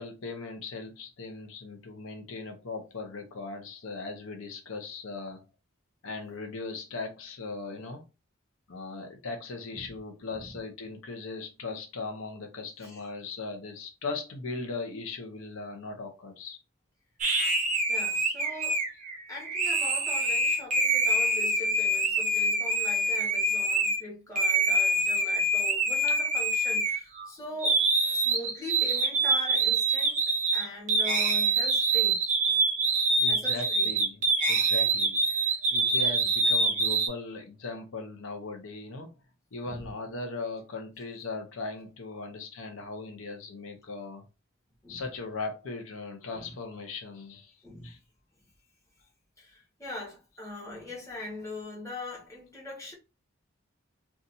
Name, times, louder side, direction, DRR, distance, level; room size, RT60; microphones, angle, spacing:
voice 1, 0.0-5.4 6.0-8.1 8.7-16.6 28.0-28.4 33.2-39.1 39.5-44.3 44.9-47.6 47.8-48.0, left 3 dB, 80° left, 0.7 m, -39 dB
sound 1, 17.2-24.0 24.4-27.3 27.6-37.1, right 2 dB, 40° right, 0.7 m, -25 dB
voice 2, 17.9-18.9 19.3-27.8 28.1-30.2 30.5-32.2 33.3-33.9 35.4-35.6 39.7-39.9 44.8-45.1 46.3-46.5 47.6-48.0 49.4-52.9, left 1 dB, 15° left, 1.2 m, -41 dB
2.6 x 2.4 x 4.0 m
head